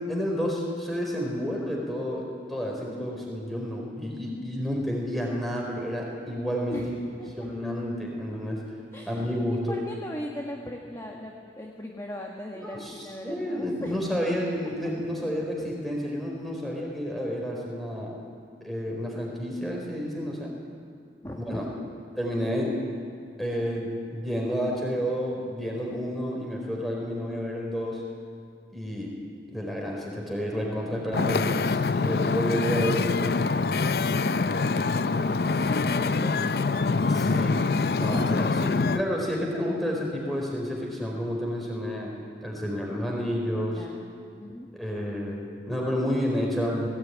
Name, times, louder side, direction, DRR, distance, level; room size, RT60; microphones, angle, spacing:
voice 1, 0.0-6.9 7.4-8.6 9.1-9.8 12.6-12.9 13.2-18.2 18.6-20.5 21.3-21.6 22.2-22.8 23.4-28.0 28.7-29.2 29.5-33.3 37.1-37.7 38.0-42.1 42.4-43.8 44.7-46.9, equal, ahead, -2 dB, 4.4 m, -30 dB
voice 2, 8.9-14.0 14.6-14.7 21.2-21.8 34.2-37.6 38.1-38.8 43.2-44.1 44.4-44.7, left 1 dB, 15° left, -1 dB, 1.4 m, -39 dB
Wind / Ocean, 31.1-39.0, left 4 dB, 60° left, 0.5 m, -25 dB
19.0 x 17.5 x 9.5 m, 2.3 s
head